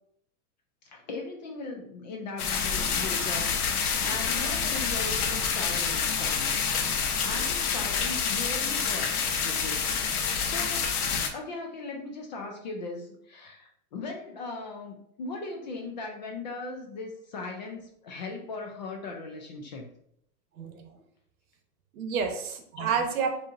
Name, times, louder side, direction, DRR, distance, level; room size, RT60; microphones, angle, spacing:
voice 1, 0.8-11.0 11.3-19.9 22.8-22.9, left 3 dB, 30° left, 2 dB, 0.4 m, -39 dB
sound 1, 2.4-11.3, left 6 dB, 80° left, 0.9 m, -28 dB
voice 2, 20.6-21.0 21.9-23.5, right 6 dB, 70° right, 5 dB, 1.1 m, -30 dB
6.4 x 2.7 x 2.6 m, 0.70 s
supercardioid pair, 160°, 45 cm